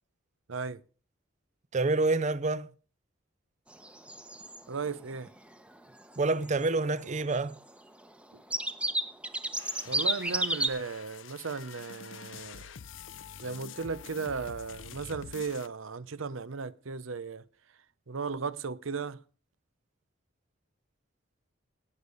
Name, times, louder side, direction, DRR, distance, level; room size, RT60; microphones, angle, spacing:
voice 1, 0.5-0.8 4.7-5.3 8.3-8.4 9.8-12.7 13.4-17.4 18.1-19.2, right 5 dB, 85° right, 0.7 m, -36 dB
voice 2, 1.7-2.7 6.2-7.6, right 3 dB, 35° right, 0.6 m, -27 dB
sound 1, 3.7-4.6 4.9-5.0 5.1-5.4 5.7-5.8 6.0-6.7 7.0-7.8 8.2-8.3 8.5-10.7, right 1 dB, 5° right, 0.9 m, -31 dB
sound 2, 9.6-15.7, left 7 dB, 70° left, 0.6 m, -47 dB
18.0 x 6.7 x 5.2 m
head